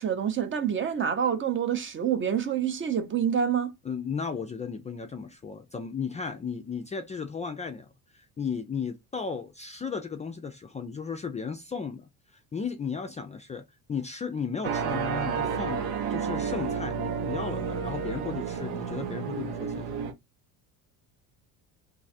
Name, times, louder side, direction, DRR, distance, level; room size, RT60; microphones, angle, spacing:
voice 1, 0.0-3.7, right 8 dB, 30° right, 0.6 m, -27 dB
voice 2, 3.8-7.9 8.1-13.6 13.9-20.1, left 6 dB, 20° left, 0.4 m, -35 dB
sound 1, 14.6-20.1, right 6 dB, 85° right, 0.9 m, -31 dB
2.6 x 2.4 x 4.0 m
cardioid pair, 115°, 37 cm